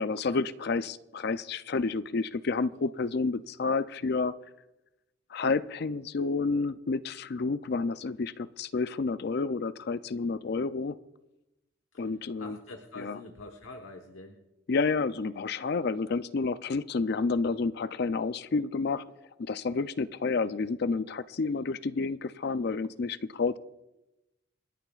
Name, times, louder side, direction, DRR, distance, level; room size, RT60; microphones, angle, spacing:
voice 1, 0.0-4.3 5.3-11.0 12.0-12.6 13.0-13.2 14.7-19.0 19.4-23.6, left 4 dB, 55° left, 14 dB, 0.4 m, -30 dB
voice 2, 12.4-14.4, left 2 dB, 90° left, 4 dB, 1.2 m, -45 dB
28.5 x 10.5 x 2.4 m, 0.97 s
head